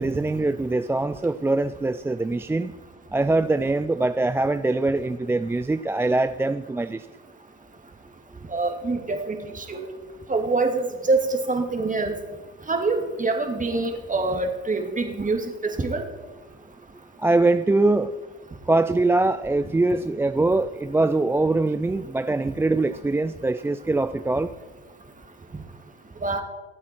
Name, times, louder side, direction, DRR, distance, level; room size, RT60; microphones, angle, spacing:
voice 1, 0.0-2.7 3.1-7.1 17.2-18.2 18.7-24.5, right 2 dB, 10° right, 11 dB, 0.3 m, -23 dB
voice 2, 8.5-9.4 9.7-9.9 10.3-12.1 12.7-16.0 26.2-26.4, right 3 dB, 25° right, 4 dB, 2.4 m, -25 dB
24.5 x 8.5 x 4.5 m, 1.3 s
supercardioid pair, 80°, 33 cm